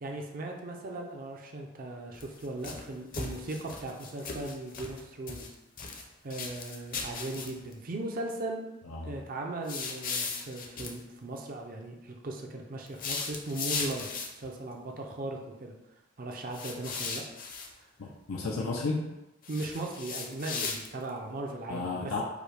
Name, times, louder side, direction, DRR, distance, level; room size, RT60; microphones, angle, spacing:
voice 1, 0.0-5.6 6.2-8.6 9.0-14.1 14.3-15.8 16.2-17.2 17.8-17.9 19.5-22.2, right 2 dB, 45° right, 2 dB, 0.5 m, -38 dB
sound 1, 2.1-2.8 3.1-5.0 5.3-6.0 6.3-7.7 9.7-11.0 12.9-14.5 16.5-17.7 19.4-21.1, left 4 dB, 45° left, 0.7 m, -37 dB
voice 2, 8.9-9.2 18.0-19.1 21.7-22.2, left 3 dB, 85° left, -2 dB, 0.6 m, -33 dB
5.0 x 2.2 x 4.8 m, 0.96 s
head